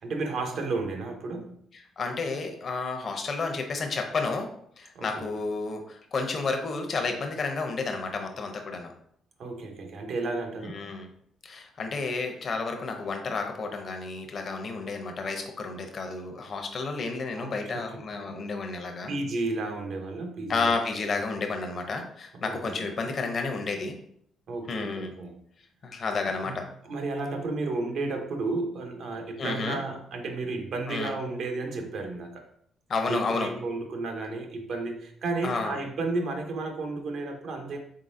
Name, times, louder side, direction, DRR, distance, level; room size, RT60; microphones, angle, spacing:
voice 1, 0.0-1.6 4.9-5.3 9.4-10.9 14.6-14.7 17.4-18.3 19.1-20.8 22.3-22.9 24.5-25.4 26.4-32.5 33.1-37.8, right 3 dB, 70° right, 3 dB, 0.8 m, -33 dB
voice 2, 2.0-4.5 4.8-8.9 10.6-11.1 11.4-19.1 20.5-24.0 24.7-25.1 25.8-26.6 29.4-29.8 30.9-31.1 32.9-33.5 35.4-35.8, left 4 dB, 50° left, 4 dB, 0.7 m, -31 dB
3.7 x 3.7 x 2.6 m, 0.66 s
cardioid pair, 90°, 0 cm